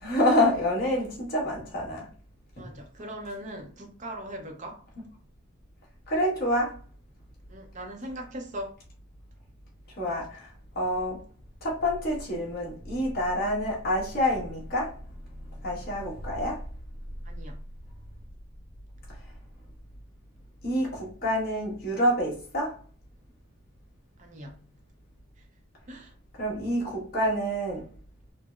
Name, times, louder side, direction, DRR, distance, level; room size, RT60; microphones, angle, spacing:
voice 1, 0.0-2.1 2.6-2.7 6.1-6.7 10.0-10.5 10.7-11.2 11.6-14.9 15.6-16.6 20.6-22.8 26.4-27.9, equal, 45° left, 1.2 m, -27 dB
voice 2, 2.6-4.8 7.5-8.7 17.2-17.6 24.2-24.6 25.9-26.1, right 1 dB, 35° right, 0.6 m, -40 dB
3.7 x 2.0 x 2.4 m
head